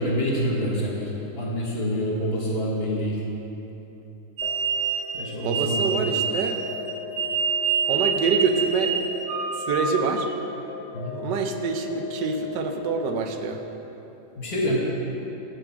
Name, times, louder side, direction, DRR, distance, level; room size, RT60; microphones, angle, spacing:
voice 1, 0.0-3.2 5.1-6.0 10.9-11.1 14.4-14.8, equal, 40° left, -4 dB, 1.4 m, -26 dB
sound 1, 4.4-13.2, left 7 dB, 75° left, 1.3 m, -38 dB
sound 2, 4.4-10.4, right 6 dB, 65° right, 0.7 m, -26 dB
voice 2, 5.4-6.6 7.9-9.0 9.7-10.3 11.1-13.6, right 5 dB, 90° right, 6 dB, 1.3 m, -26 dB
7.7 x 4.8 x 7.1 m, 3.0 s
omnidirectional pair, 1.8 m